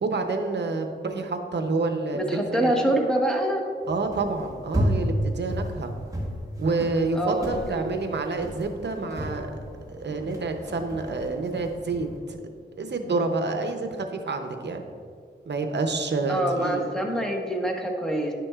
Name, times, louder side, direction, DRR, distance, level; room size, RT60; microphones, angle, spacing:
voice 1, 0.0-2.9 3.9-5.9 6.6-9.5 9.9-12.4 12.8-14.9 15.5-16.9, right 3 dB, 60° right, 5 dB, 0.7 m, -28 dB
voice 2, 2.1-3.6 7.1-7.8 16.3-18.3, right 1 dB, 5° left, 0 dB, 1.0 m, -25 dB
sound 1, 3.9-12.2, equal, 15° right, 1.2 m, -32 dB
9.9 x 5.9 x 2.4 m, 2.2 s
wide cardioid pair, 80°, 20 cm